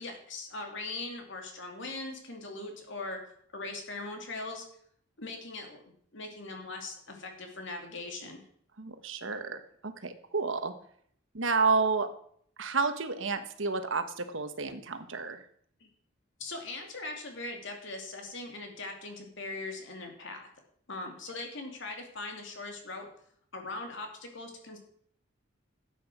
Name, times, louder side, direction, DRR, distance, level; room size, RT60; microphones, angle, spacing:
voice 1, 0.0-3.2 3.5-4.6 5.2-5.8 6.1-8.4 16.4-20.5 20.9-23.1 23.5-24.8, left 2 dB, 65° left, 3 dB, 2.7 m, -40 dB
voice 2, 8.8-10.7 11.3-12.1 12.6-15.4, right 4 dB, 70° right, 9 dB, 1.3 m, -30 dB
12.5 x 8.6 x 6.2 m, 0.63 s
head